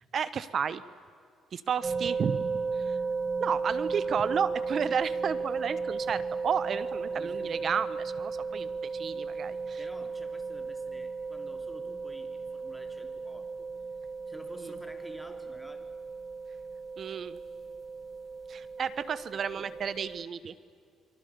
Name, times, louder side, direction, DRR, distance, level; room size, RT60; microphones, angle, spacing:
voice 1, 0.1-0.8 1.5-3.0 3.4-9.8 17.0-17.4 18.5-20.5, right 7 dB, 45° right, 15 dB, 1.1 m, -32 dB
sound 1, 1.8-20.2, right 4 dB, 20° right, 0.7 m, -35 dB
voice 2, 7.1-7.7 9.8-13.7 14.3-15.9 19.3-19.7, equal, ahead, 5 dB, 2.9 m, -50 dB
29.5 x 24.0 x 7.0 m, 2.2 s
cardioid pair, 115°, 0 cm